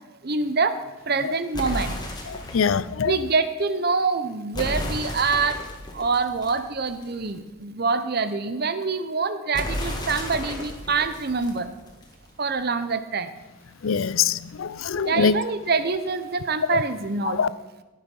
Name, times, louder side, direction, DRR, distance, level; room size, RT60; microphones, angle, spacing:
voice 1, 0.2-2.0 3.0-5.6 5.9-11.7 12.4-13.3 15.0-17.4, right 4 dB, 45° right, 11 dB, 0.8 m, -25 dB
sound 1, 1.5-2.8 4.5-7.3 9.5-12.3, left 1 dB, 20° left, 1.7 m, -33 dB
voice 2, 2.3-3.2 13.8-15.3 16.7-16.8 17.3-17.5, left 6 dB, 70° left, 17 dB, 0.5 m, -23 dB
17.0 x 7.3 x 5.5 m, 1.1 s
head